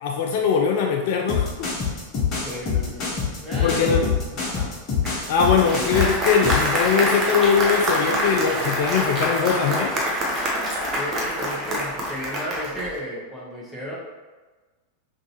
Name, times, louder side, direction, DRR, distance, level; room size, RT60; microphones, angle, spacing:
voice 1, 0.0-1.7 3.6-4.0 5.3-10.0, left 6 dB, 50° left, 2 dB, 0.3 m, -21 dB
sound 1, 1.3-6.7, left 6 dB, 35° left, 1.0 m, -25 dB
voice 2, 2.4-4.1 4.3-4.7 10.9-14.0, equal, ahead, -7 dB, 1.3 m, -34 dB
Applause, 5.0-12.9, equal, 30° right, 0.9 m, -25 dB
5.2 x 2.7 x 2.9 m, 1.3 s
figure-of-eight pair, 90°, 0 cm